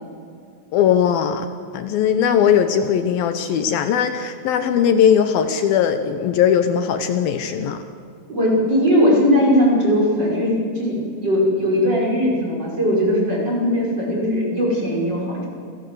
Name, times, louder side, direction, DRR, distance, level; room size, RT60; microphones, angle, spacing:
voice 1, 0.7-1.5 1.7-7.9, left 8 dB, 75° left, 9 dB, 2.7 m, -19 dB
voice 2, 8.3-15.5, equal, 25° right, -3 dB, 6.1 m, -19 dB
27.0 x 18.0 x 7.8 m, 2.4 s
omnidirectional pair, 4.5 m